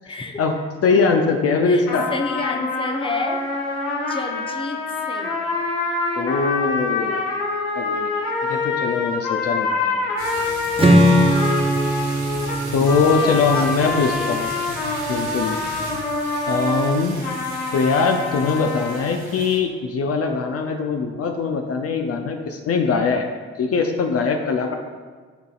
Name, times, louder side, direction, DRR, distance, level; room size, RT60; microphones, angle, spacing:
voice 1, 0.1-0.4 1.6-1.8 2.1-3.5 4.1-5.4 13.2-14.4, left 3 dB, 15° left, 4 dB, 0.8 m, -30 dB
voice 2, 0.8-2.1 6.2-7.2 7.7-8.1 8.4-10.0 12.7-14.5 15.1-15.6 16.5-17.2 17.7-23.2 23.6-24.7, left 4 dB, 50° left, 4 dB, 0.6 m, -21 dB
sound 1, 1.9-19.0, left 3 dB, 80° left, 1.3 m, -26 dB
sound 2, 10.2-19.6, right 2 dB, 90° right, 1.5 m, -36 dB
Strum, 10.8-14.9, right 1 dB, 15° right, 1.2 m, -20 dB
11.5 x 4.0 x 2.5 m, 1.5 s
hypercardioid pair, 55°, 31 cm